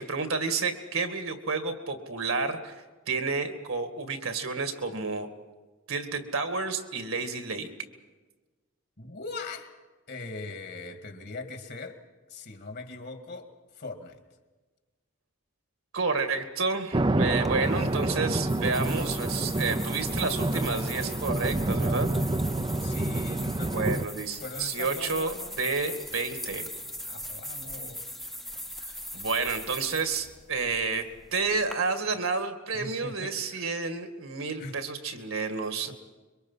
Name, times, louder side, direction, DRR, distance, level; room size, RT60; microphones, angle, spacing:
voice 1, 0.0-2.8 3.1-5.3 5.9-7.7 15.9-22.1 23.7-26.7 29.1-35.9, right 4 dB, 70° right, 6 dB, 2.2 m, -30 dB
voice 2, 9.0-9.8 10.1-12.0 12.3-14.2 17.3-18.1 22.8-23.9 24.4-25.6 27.1-28.1 32.7-33.8 34.6-34.8 35.8-35.9, left 3 dB, 50° left, 5 dB, 2.2 m, -41 dB
sound 1, 16.9-24.0, right 2 dB, 25° right, 0.6 m, -28 dB
sound 2, 17.4-31.7, equal, ahead, 0.9 m, -41 dB
26.0 x 23.5 x 5.8 m, 1.3 s
head